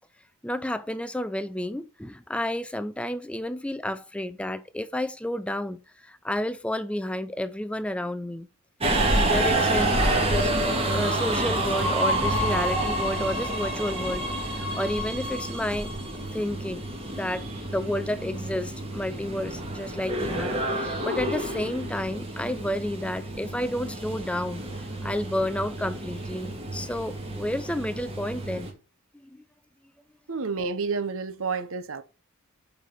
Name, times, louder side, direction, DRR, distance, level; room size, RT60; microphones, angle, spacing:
voice 1, 0.4-8.5 9.1-10.5 10.9-15.9 16.3-16.9 17.1-24.6 25.0-28.7 29.2-29.4, left 1 dB, 5° left, 0.4 m, -31 dB
Subway metro underground, 8.8-28.7, right 1 dB, 25° right, 1.7 m, -28 dB
voice 2, 30.3-32.0, right 4 dB, 65° right, 0.8 m, -30 dB
7.2 x 5.4 x 4.4 m
head